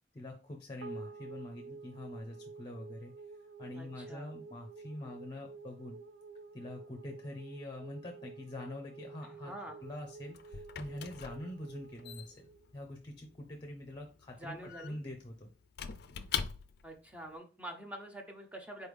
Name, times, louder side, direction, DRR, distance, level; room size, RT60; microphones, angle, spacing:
voice 1, 0.1-3.1 3.6-6.0 6.5-9.5 9.8-12.5 12.7-15.5, left 1 dB, 25° left, 3 dB, 0.7 m, -45 dB
sound 1, 0.8-13.3, right 4 dB, 80° right, 0.4 m, -50 dB
voice 2, 3.8-4.3 9.2-9.8 14.4-15.0 16.8-18.9, right 1 dB, 10° right, 3 dB, 0.7 m, -46 dB
Squeak / Wood, 9.8-17.0, left 7 dB, 60° left, 0.4 m, -43 dB
4.2 x 3.4 x 3.4 m, 0.35 s
head